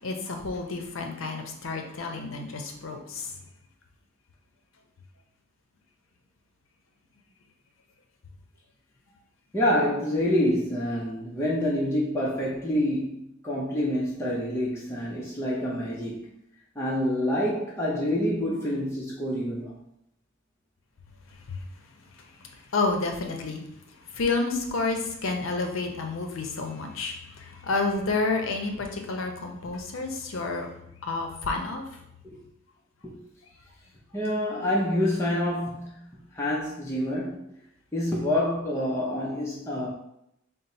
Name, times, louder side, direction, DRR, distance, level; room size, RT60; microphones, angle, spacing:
voice 1, 0.0-3.4 21.5-21.6 22.2-23.6 24.1-30.7 31.0-31.9, left 3 dB, 75° left, 3 dB, 0.6 m, -30 dB
voice 2, 9.5-16.3 16.8-19.8 32.3-32.4 33.0-33.1 34.1-37.5 37.9-39.9, left 1 dB, 15° left, -5 dB, 0.6 m, -27 dB
4.0 x 2.0 x 4.1 m, 0.76 s
head